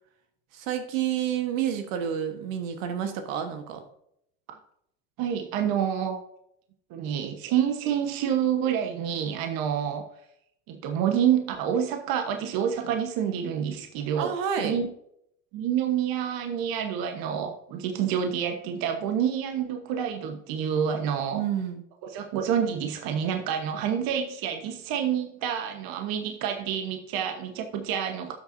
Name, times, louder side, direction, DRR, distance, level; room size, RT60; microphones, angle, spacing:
voice 1, 0.5-3.8 14.2-14.7 21.3-21.8, right 9 dB, 80° right, 6 dB, 1.4 m, -29 dB
voice 2, 5.2-6.2 6.9-10.0 10.7-14.9 15.5-21.4 22.0-28.3, right 8 dB, 65° right, 5 dB, 1.2 m, -28 dB
12.0 x 6.7 x 2.7 m, 0.73 s
supercardioid pair, 85°, 38 cm